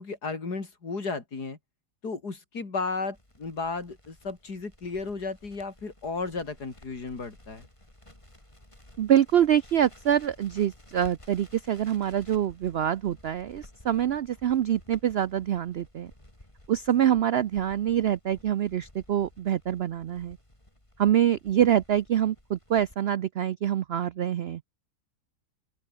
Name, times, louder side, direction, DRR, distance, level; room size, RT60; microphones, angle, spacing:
voice 1, 0.0-1.6 2.0-7.7, left 4 dB, 85° left, 4.0 m, -34 dB
Crackle, 3.1-23.0, left 1 dB, 20° left, 5.2 m, -54 dB
voice 2, 9.0-16.1 16.7-20.4 21.0-24.6, right 10 dB, 75° right, 0.5 m, -25 dB
open air
omnidirectional pair, 1.7 m